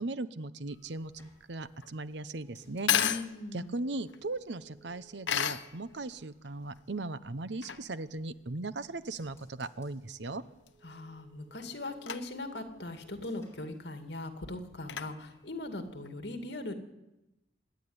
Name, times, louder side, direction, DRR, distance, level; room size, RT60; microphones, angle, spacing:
voice 1, 0.0-2.9 3.5-10.4, right 2 dB, 70° right, 14 dB, 0.9 m, -38 dB
sound 1, 0.7-16.1, left 9 dB, 85° left, 1.0 m, -37 dB
sound 2, 0.8-7.5 7.8-8.5 8.8-14.5 14.8-15.3, right 2 dB, 15° left, 5.5 m, -64 dB
voice 2, 2.9-3.7 10.8-16.7, left 2 dB, 65° left, 6 dB, 2.4 m, -40 dB
26.0 x 10.5 x 9.6 m, 0.95 s
head